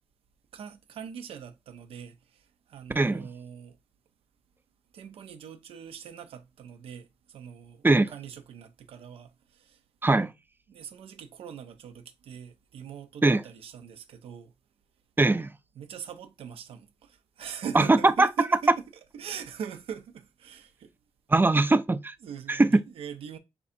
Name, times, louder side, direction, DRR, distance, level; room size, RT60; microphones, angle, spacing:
voice 1, 0.5-3.8 4.9-9.8 10.7-14.5 15.7-18.7 19.1-20.9 21.5-21.7 22.2-23.4, right 7 dB, 80° right, 0.6 m, -42 dB
voice 2, 3.0-3.3 7.8-8.1 10.0-10.3 13.2-13.4 15.2-15.5 17.7-18.3 21.3-22.1 22.5-22.7, right 2 dB, 20° right, 0.5 m, -21 dB
6.9 x 2.5 x 2.7 m
supercardioid pair, 45°, 10 cm